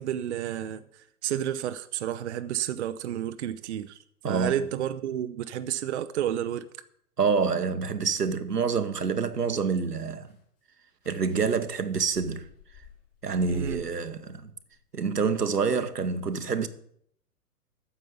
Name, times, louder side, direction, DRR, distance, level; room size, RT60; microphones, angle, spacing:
voice 1, 0.0-4.0 4.3-6.7 13.5-13.9, right 10 dB, 50° right, 0.6 m, -31 dB
voice 2, 7.2-10.3 11.1-12.5 13.2-14.5 14.9-16.7, right 5 dB, 80° right, 1.0 m, -27 dB
sink running, 10.3-10.4 11.0-14.3 14.7-15.4, left 6 dB, 35° left, 4.7 m, -50 dB
9.6 x 7.3 x 7.9 m
figure-of-eight pair, 110°, 47 cm